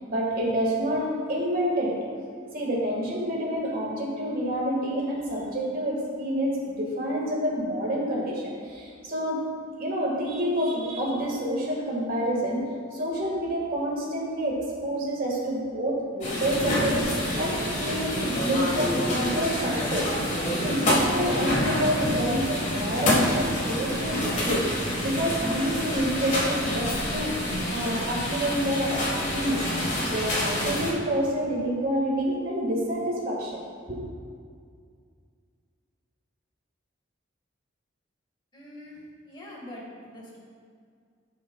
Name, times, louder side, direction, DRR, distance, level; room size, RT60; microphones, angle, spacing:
voice 1, 0.0-2.0 2.5-9.4 9.8-12.6 12.9-20.1 20.6-24.6 25.0-27.3 27.7-29.6 30.0-33.6 33.9-34.0, equal, 50° right, -3 dB, 1.8 m, -28 dB
sound 1, 16.2-30.9, equal, 40° left, 1.5 m, -27 dB
voice 2, 38.5-40.4, left 1 dB, 25° left, -3 dB, 1.8 m, -44 dB
12.5 x 6.4 x 2.4 m, 2.1 s
head